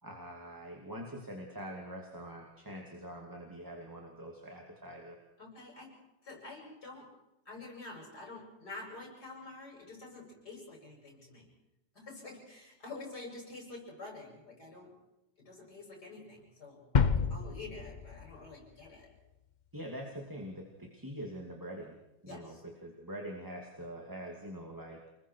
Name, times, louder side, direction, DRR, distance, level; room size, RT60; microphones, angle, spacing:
voice 1, 0.0-5.2 19.7-22.0 22.2-25.0, equal, 10° right, 0 dB, 2.5 m, -44 dB
voice 2, 5.4-6.0 6.2-7.1 7.4-11.5 11.9-14.9 15.4-19.1 22.3-22.6, left 3 dB, 55° left, -1 dB, 8.4 m, -48 dB
sound 1, 16.9-19.0, left 5 dB, 90° left, 0.4 m, -30 dB
29.5 x 21.0 x 4.7 m, 0.91 s
omnidirectional pair, 2.0 m